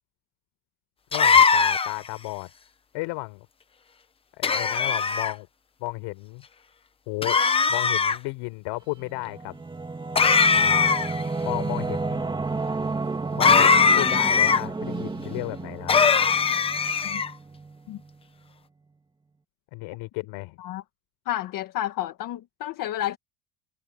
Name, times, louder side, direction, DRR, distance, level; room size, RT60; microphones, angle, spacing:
voice 1, 1.1-2.5 2.9-3.5 4.3-5.5 5.8-6.4 7.1-7.4 7.7-9.6 10.5-11.0 11.4-12.3 13.3-16.1 19.7-20.6, left 23 dB, 60° left, 4.2 m, -33 dB
sound 1, 1.1-2.1 4.4-5.3 7.2-8.2 10.1-11.2 13.4-14.6 15.9-17.3, left 5 dB, 10° left, 0.6 m, -20 dB
Singing / Musical instrument, 9.0-18.2, right 3 dB, 10° right, 1.9 m, -32 dB
voice 2, 21.2-23.2, left 13 dB, 40° left, 1.6 m, -31 dB
cardioid pair, 165°, 49 cm